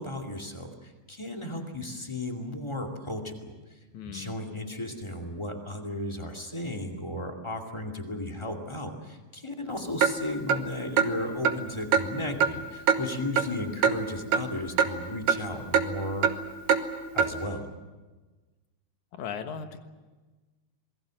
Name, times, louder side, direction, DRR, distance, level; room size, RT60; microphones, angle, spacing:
voice 1, 0.0-3.6 4.0-16.3 17.1-17.7, left 1 dB, 10° left, 2 dB, 1.6 m, -35 dB
voice 2, 3.9-4.4 19.1-19.8, left 7 dB, 60° left, 7 dB, 2.6 m, -37 dB
Clock, 10.0-10.1 10.5-10.6 11.0-11.1 11.5-11.6 11.9-12.1 12.4-12.5 12.9-13.0 13.4-13.5 13.8-14.0 14.3-14.4 14.8-14.9 15.3-15.4 15.7-15.9 16.2-16.4 16.7-16.8 17.2-17.3, right 7 dB, 70° right, 2.7 m, -22 dB
27.0 x 21.0 x 7.7 m, 1.3 s
omnidirectional pair, 4.1 m